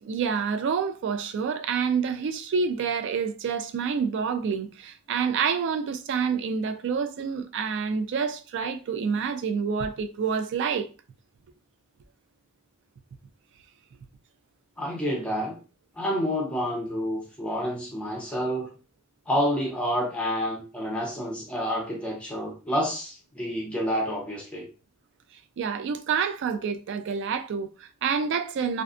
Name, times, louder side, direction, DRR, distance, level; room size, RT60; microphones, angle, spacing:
voice 1, 0.0-10.9 25.6-28.8, right 6 dB, 55° right, 0.3 m, -28 dB
voice 2, 14.8-15.6 16.0-18.7 19.3-24.7, equal, 5° left, 0.7 m, -29 dB
2.5 x 2.2 x 2.4 m
head